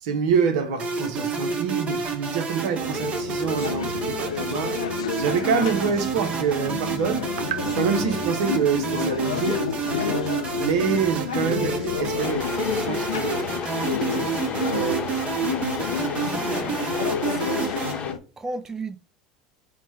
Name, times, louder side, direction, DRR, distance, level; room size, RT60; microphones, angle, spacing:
voice 1, 0.0-4.8 5.2-9.7 10.6-13.5 14.7-15.2, right 6 dB, 70° right, 0.7 m, -26 dB
sound 1, 0.8-17.9, right 5 dB, 35° right, 0.8 m, -29 dB
sound 2, 2.8-18.2, left 7 dB, 85° left, 0.4 m, -30 dB
sound 3, 12.2-18.1, left 6 dB, 35° left, 0.8 m, -34 dB
voice 2, 14.5-14.9 15.7-16.8 17.3-17.7 18.4-19.0, right 3 dB, 15° right, 0.3 m, -36 dB
4.1 x 2.1 x 4.6 m
hypercardioid pair, 75°, 3 cm